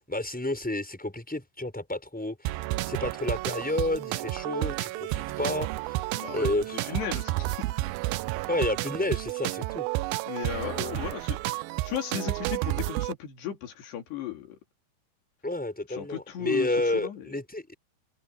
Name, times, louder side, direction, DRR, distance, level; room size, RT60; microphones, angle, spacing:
voice 1, 0.1-2.6 2.9-6.0 6.3-7.0 8.5-9.9 15.4-17.8, left 1 dB, ahead, 5.8 m, -30 dB
sound 1, 2.5-13.1, right 19 dB, 85° right, 2.1 m, -31 dB
voice 2, 6.2-6.6 6.9-7.6 10.3-11.4 11.8-14.6 15.9-17.3, left 9 dB, 80° left, 5.0 m, -35 dB
omnidirectional pair, 4.8 m